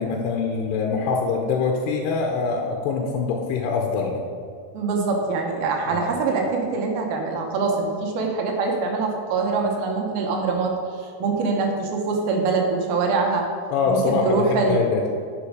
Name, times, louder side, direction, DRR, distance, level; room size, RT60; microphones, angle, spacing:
voice 1, 0.0-4.2 5.9-6.1 13.7-15.1, left 5 dB, 90° left, 1 dB, 2.8 m, -24 dB
voice 2, 4.7-13.5 13.9-14.8, right 4 dB, 75° right, 1 dB, 2.7 m, -24 dB
10.0 x 6.3 x 4.9 m, 2.3 s
omnidirectional pair, 4.8 m